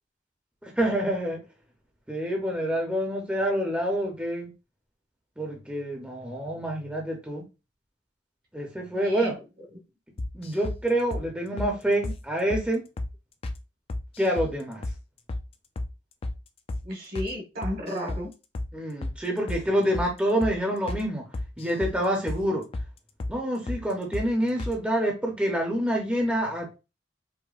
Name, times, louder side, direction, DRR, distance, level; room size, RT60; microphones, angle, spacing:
voice 1, 0.6-1.4 2.1-4.5 5.4-7.4 8.5-9.3 10.3-12.8 14.2-14.8 18.7-21.2 21.6-22.6 23.3-26.8, right 1 dB, 5° right, 0 dB, 0.6 m, -27 dB
voice 2, 8.9-9.6 16.8-18.3, equal, 55° right, 1 dB, 1.3 m, -34 dB
sound 1, 10.2-10.8 11.1-11.3 11.6-11.7 12.0-12.2 12.5-12.7 13.0-13.1 13.4-13.6 13.9-14.5 14.8-15.0 15.3-15.5 15.8-15.9 16.2-16.4 16.7-16.8 17.1-17.3 17.6-18.2 18.5-18.7 19.0-19.2 19.5-19.6 19.9-20.1 20.4-20.6 20.9-21.0 21.3-22.0 22.3-22.4 22.7-22.9 23.2-23.4 23.7-23.8 24.1-24.3 24.6-24.8, left 2 dB, 30° left, 0.3 m, -32 dB
4.8 x 2.1 x 2.4 m, 0.29 s
head